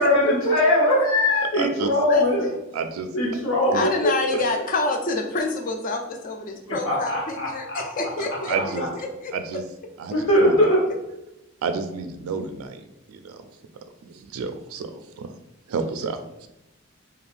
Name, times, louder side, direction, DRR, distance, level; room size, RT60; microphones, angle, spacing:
voice 1, 0.0-2.4 3.1-4.1 6.8-7.8 8.3-8.9 10.1-10.8, left 1 dB, 75° left, -5 dB, 1.2 m, -21 dB
voice 2, 1.5-1.9 2.7-3.1 3.7-3.9 8.2-8.9 9.3-9.6 10.0-10.1 10.4-10.5 11.6-13.4 14.0-15.3 15.7-16.5, right 5 dB, 80° right, 8 dB, 0.3 m, -30 dB
voice 3, 2.1-2.6 3.7-8.6 9.2-9.3, left 2 dB, 40° left, 4 dB, 0.4 m, -27 dB
2.5 x 2.3 x 3.2 m, 0.94 s
head